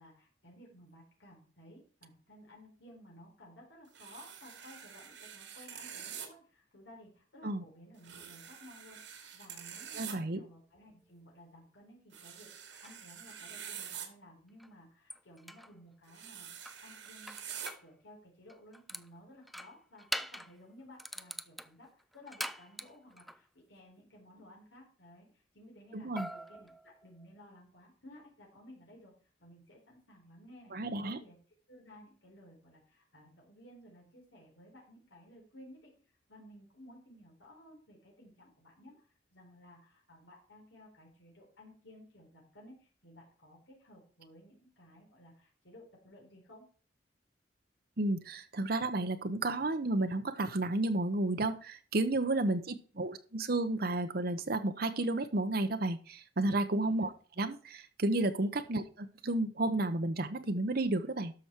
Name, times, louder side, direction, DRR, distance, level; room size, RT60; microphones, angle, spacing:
voice 1, 0.0-29.1 29.4-30.8 31.0-31.4 31.7-35.9 36.3-46.7 56.8-57.1 58.6-58.7, left 1 dB, 85° left, -2 dB, 4.1 m, -56 dB
sound 1, 3.9-6.3 8.0-10.1 12.1-14.1 16.1-17.7, right 8 dB, 85° right, 2.4 m, -46 dB
voice 2, 9.9-10.4 25.9-26.3 30.7-31.2 48.0-57.1 57.4-61.3, right 2 dB, 55° right, 8 dB, 0.9 m, -32 dB
sound 2, 12.7-13.0 14.6-14.7 15.1-15.7 16.7-17.9 18.5-19.1 19.5-20.6 21.0-23.4 26.2-27.4, equal, ahead, 0.4 m, -43 dB
12.5 x 6.2 x 4.5 m, 0.40 s
head